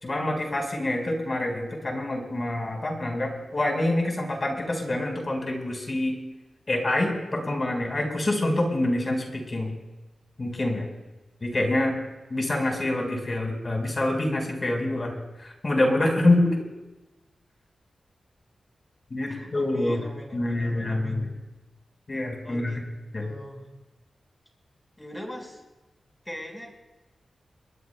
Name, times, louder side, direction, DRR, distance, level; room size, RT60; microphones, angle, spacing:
voice 1, 0.0-6.1 6.7-9.7 10.4-10.9 11.4-11.9 12.3-15.1 15.4-16.6 19.1-20.0 20.3-21.3 22.1-22.8 23.1-23.2, left 1 dB, 35° left, 1 dB, 4.7 m, -26 dB
voice 2, 19.2-21.3 22.4-22.8 23.2-23.7 25.0-25.6 26.2-26.7, equal, 10° left, 1 dB, 4.7 m, -40 dB
29.0 x 22.0 x 2.3 m, 1.1 s
wide cardioid pair, 100°, 0 cm